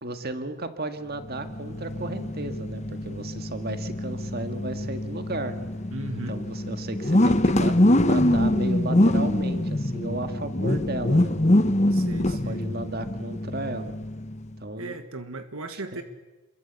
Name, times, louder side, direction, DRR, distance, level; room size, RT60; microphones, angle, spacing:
voice 1, 0.0-5.5 6.3-11.3 12.1-13.9 14.6-15.0 15.9-16.0, right 2 dB, 45° right, 8 dB, 2.0 m, -34 dB
sound 1, 1.2-14.5, left 1 dB, 30° left, 1.0 m, -24 dB
voice 2, 5.9-6.4 11.9-12.6 14.8-16.0, right 2 dB, 70° right, 8 dB, 1.6 m, -36 dB
28.0 x 22.5 x 8.3 m, 1.1 s
head